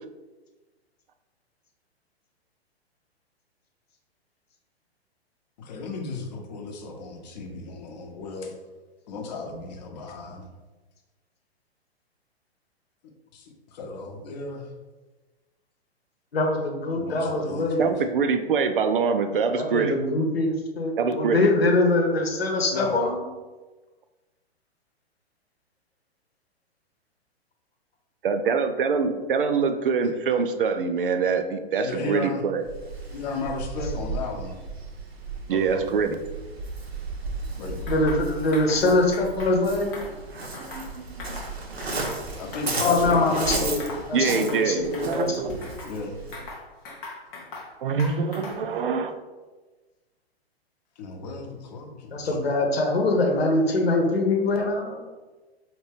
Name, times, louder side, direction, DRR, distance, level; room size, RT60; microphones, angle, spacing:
voice 1, 5.6-8.5 9.1-10.4 13.3-14.7 16.9-18.0 22.7-22.9 31.8-32.4 33.1-34.6 35.5-36.2 37.6-38.0 42.4-43.8 45.8-46.2 51.0-52.4, left 3 dB, 40° left, 2 dB, 0.7 m, -34 dB
voice 2, 16.3-17.9 19.5-23.2 37.9-39.9 42.8-43.8 44.1-45.6 52.1-55.0, left 2 dB, 70° left, 2 dB, 0.9 m, -23 dB
voice 3, 17.8-20.0 21.0-21.5 28.2-32.6 35.5-36.2 40.6-41.4 44.1-45.6 47.8-49.1, right 5 dB, 55° right, 8 dB, 0.4 m, -25 dB
Waves surf, 32.6-46.5, right 3 dB, 75° right, 0.9 m, -34 dB
sound 1, 37.9-38.2 38.5-38.8 39.1-39.5 39.9-40.9 41.2-41.5 41.8-42.8 43.1-43.5 43.8-44.1 44.4-44.7 44.9-45.9 46.3-47.7 48.0-48.7, left 3 dB, 10° left, 0.3 m, -40 dB
4.3 x 2.9 x 3.4 m, 1.2 s
figure-of-eight pair, 110°, 32 cm